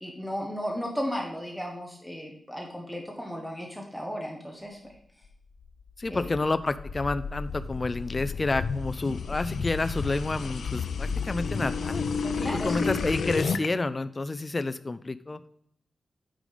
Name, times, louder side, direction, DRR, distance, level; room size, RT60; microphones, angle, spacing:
voice 1, 0.0-4.8 6.1-6.3 12.2-12.9, equal, ahead, 0 dB, 1.1 m, -35 dB
sound 1, 5.6-13.7, left 5 dB, 85° left, 0.5 m, -32 dB
voice 2, 6.0-12.0 12.6-15.5, left 2 dB, 25° left, 12 dB, 0.3 m, -29 dB
9.1 x 5.0 x 4.9 m, 0.69 s
wide cardioid pair, 155°, 0 cm